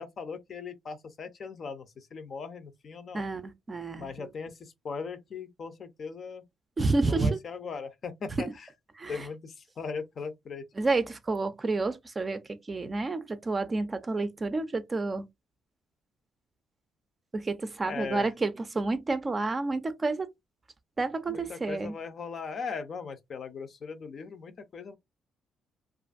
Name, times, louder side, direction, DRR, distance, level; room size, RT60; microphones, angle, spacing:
voice 1, 0.0-3.3 4.0-6.4 7.0-8.7 9.1-10.6 17.8-18.3 21.3-25.0, left 5 dB, 50° left, 0.5 m, -39 dB
voice 2, 3.1-4.1 6.8-7.4 8.4-8.5 9.0-9.2 10.8-12.4 12.7-15.3 17.3-20.3 21.0-21.9, right 3 dB, 30° right, 0.5 m, -29 dB
2.5 x 2.5 x 2.4 m
cardioid pair, 90°, 0 cm